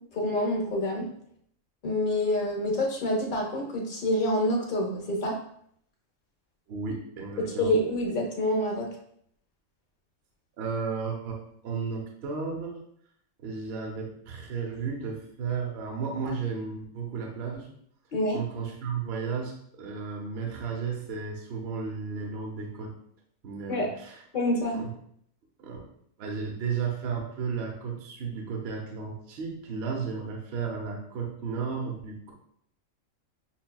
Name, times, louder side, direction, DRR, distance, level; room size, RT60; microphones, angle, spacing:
voice 1, 0.1-1.1 1.8-5.4 7.4-8.9 18.1-18.4 23.7-23.9 24.3-24.8, left 1 dB, 45° left, 0 dB, 0.8 m, -27 dB
voice 2, 6.7-7.8 10.6-12.7 13.4-17.7 18.3-22.9 23.4-24.2 24.7-24.9 25.6-25.8 26.2-32.3, right 5 dB, 55° right, 0 dB, 0.9 m, -34 dB
5.7 x 2.2 x 2.2 m, 0.68 s
omnidirectional pair, 1.4 m